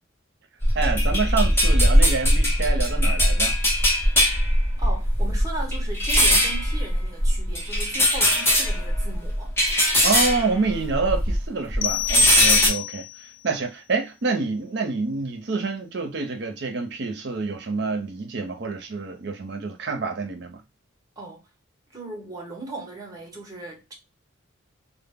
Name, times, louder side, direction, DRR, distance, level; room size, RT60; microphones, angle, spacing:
sound 1, 0.6-11.5 11.7-12.7, equal, 10° left, 0.6 m, -20 dB
voice 1, 0.7-3.6 10.0-20.6, right 4 dB, 55° right, 0.5 m, -27 dB
voice 2, 4.8-9.5 21.2-21.4 21.9-23.9, right 2 dB, 15° right, 0.8 m, -37 dB
sound 2, 11.8-13.4, left 16 dB, 65° left, 0.3 m, -27 dB
2.0 x 2.0 x 3.5 m
head